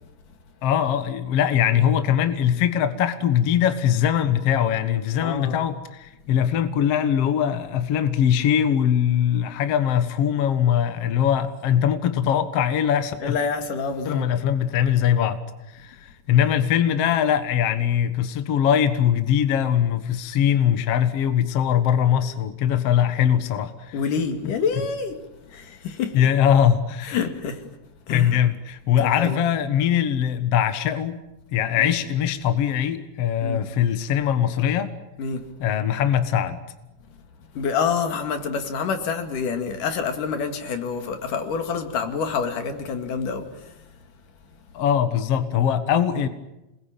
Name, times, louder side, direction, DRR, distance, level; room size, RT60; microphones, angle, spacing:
voice 1, 0.6-13.4 14.1-15.4 15.7-23.9 26.1-27.2 28.1-31.2 31.5-34.9 35.6-36.6 44.7-46.3, left 9 dB, 55° left, 2.2 m, -21 dB
voice 2, 5.2-5.6 13.2-14.3 23.9-26.2 27.0-27.7 28.1-28.5 29.0-29.4 31.8-31.9 33.4-33.7 35.2-35.5 37.5-43.9, left 5 dB, 80° left, 3.8 m, -27 dB
28.5 x 21.0 x 9.1 m
omnidirectional pair, 3.7 m